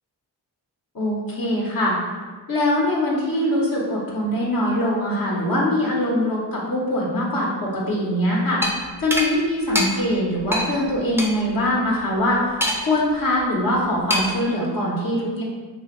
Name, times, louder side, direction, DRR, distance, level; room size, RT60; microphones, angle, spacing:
voice 1, 0.9-2.0 2.5-8.6 9.0-12.6 12.9-15.4, left 1 dB, 55° left, -5 dB, 0.8 m, -22 dB
sound 1, 8.6-8.7 9.1-9.3 9.7-9.9 10.5-10.7 11.2-11.3 12.6-13.0 14.1-14.4, equal, 5° right, 0.4 m, -22 dB
2.8 x 2.3 x 3.0 m, 1.4 s
cardioid pair, 45°, 41 cm